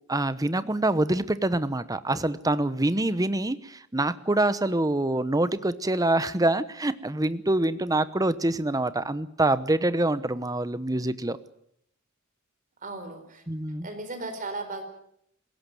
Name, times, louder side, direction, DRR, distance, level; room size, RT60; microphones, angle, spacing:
voice 1, 0.1-11.4 13.5-13.9, right 2 dB, 15° right, 14 dB, 0.9 m, -25 dB
voice 2, 12.8-13.4 13.8-14.8, right 2 dB, 40° right, 7 dB, 4.4 m, -36 dB
21.0 x 17.5 x 9.3 m, 0.72 s
head